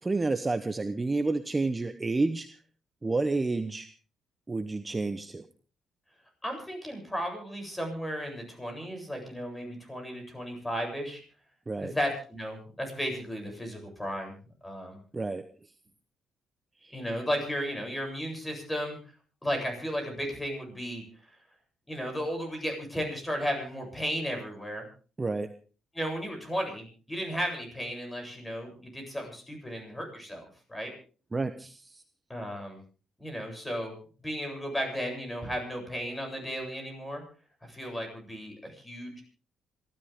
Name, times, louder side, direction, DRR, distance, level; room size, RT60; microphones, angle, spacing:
voice 1, 0.0-2.6 3.0-3.9 4.5-5.4 11.7-11.9 15.1-15.4 16.8-17.0 25.2-25.5 31.3-32.0, right 3 dB, 20° right, 9 dB, 1.0 m, -30 dB
voice 2, 6.4-11.2 11.8-14.4 14.6-15.0 16.9-19.0 19.4-21.0 21.9-24.8 25.9-30.9 32.3-32.8 33.2-34.0 34.2-37.2 37.6-39.2, equal, 10° left, 4 dB, 7.9 m, -34 dB
27.0 x 13.0 x 3.7 m, 0.39 s
cardioid pair, 90°, 0 cm